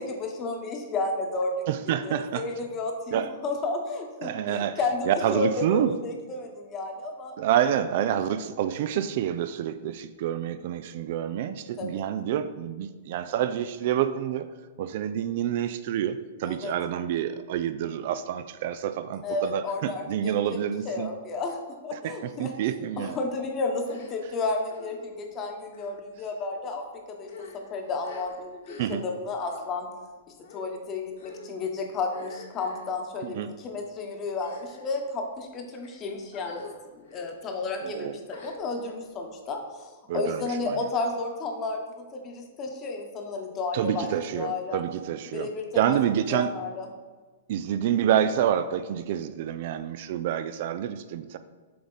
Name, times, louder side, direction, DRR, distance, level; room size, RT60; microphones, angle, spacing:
voice 1, 0.0-7.4 11.8-12.0 16.4-16.7 19.2-20.6 20.8-21.6 21.8-29.9 30.5-36.7 36.9-41.8 42.1-44.1 44.4-44.8 45.3-46.9, left 3 dB, 30° left, 3 dB, 1.0 m, -32 dB
voice 2, 1.7-2.4 3.1-3.3 4.2-4.8 5.1-5.9 7.4-14.5 14.8-21.1 21.9-23.2 28.8-29.0 33.2-33.5 37.8-38.2 40.1-40.8 43.7-45.5 45.8-46.5 47.5-51.4, right 10 dB, 55° right, 12 dB, 0.3 m, -28 dB
sound 1, 22.9-23.2 23.8-24.4 24.7-25.0 25.7-25.9 26.6-26.8 27.2-29.1 29.4-29.6 30.4-30.8 31.2-31.5 32.1-32.9 33.6-33.8 34.3-35.0 35.6-35.9 36.3-36.7 37.1-37.3 38.3-38.9, left 3 dB, 70° left, 1.4 m, -47 dB
7.7 x 3.5 x 4.0 m, 1.4 s
hypercardioid pair, 135°, 0 cm